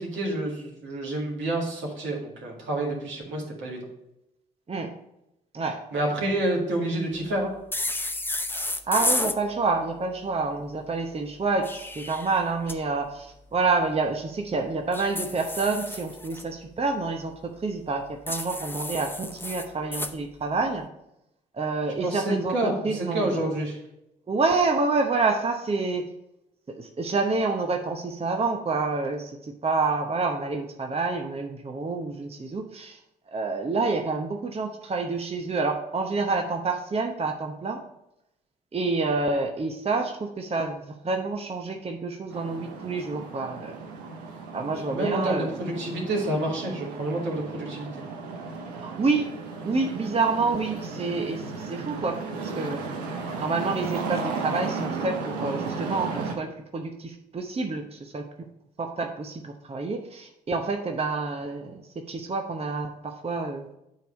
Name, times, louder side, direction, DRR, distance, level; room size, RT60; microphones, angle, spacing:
voice 1, 0.0-3.8 5.9-7.5 22.0-23.8 44.9-48.0, right 1 dB, 70° right, -1 dB, 2.0 m, -28 dB
sound 1, 7.7-9.4 11.4-12.8 14.9-16.4 18.3-20.1, left 2 dB, 10° left, 0.7 m, -31 dB
voice 2, 8.9-20.9 21.5-23.4 24.3-26.1 26.7-33.0 33.3-37.8 38.7-43.8 44.5-45.5 48.8-49.3 49.6-52.9 53.4-58.5 58.8-63.7, right 3 dB, 30° right, 4 dB, 0.8 m, -28 dB
sound 2, 42.3-56.3, right 4 dB, 85° right, 0.8 m, -35 dB
9.1 x 3.4 x 5.2 m, 0.85 s
hypercardioid pair, 45°, 20 cm